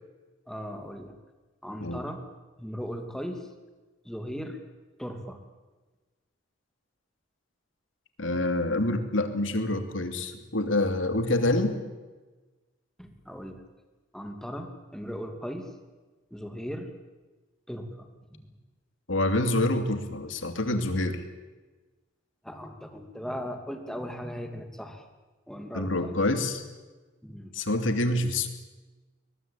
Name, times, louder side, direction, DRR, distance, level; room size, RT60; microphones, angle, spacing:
voice 1, 0.5-1.2 1.6-2.3 2.6-3.5 4.0-4.6 5.0-5.4 13.0-13.6 14.1-15.8 16.3-16.9 17.7-18.4 22.4-25.0 25.5-26.2 27.2-27.6, equal, 5° left, 5 dB, 2.7 m, -38 dB
voice 2, 8.2-11.8 19.1-21.2 25.7-26.6 27.5-28.5, left 2 dB, 85° left, 8 dB, 2.8 m, -26 dB
22.5 x 20.5 x 9.0 m, 1.2 s
head